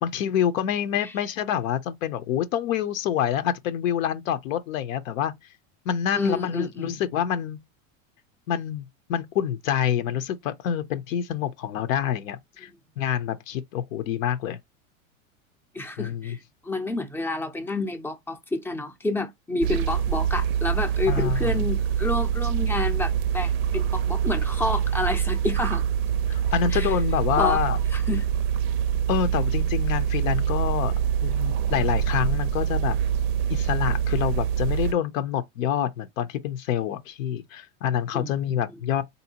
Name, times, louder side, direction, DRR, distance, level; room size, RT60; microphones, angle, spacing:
voice 1, 0.0-5.3 5.9-7.6 8.5-12.7 13.0-14.6 16.0-16.4 21.1-21.6 26.3-27.8 29.1-30.9 31.2-33.0 33.5-39.0, left 9 dB, 70° left, 0.6 m, -27 dB
voice 2, 6.1-6.9 12.6-12.7 15.7-25.8 26.7-27.0 27.4-27.6 27.9-28.3 38.1-38.5, left 2 dB, 5° left, 0.5 m, -29 dB
sound 1, 19.6-34.9, right 9 dB, 50° right, 0.5 m, -25 dB
3.7 x 2.7 x 2.8 m
hypercardioid pair, 120°, 41 cm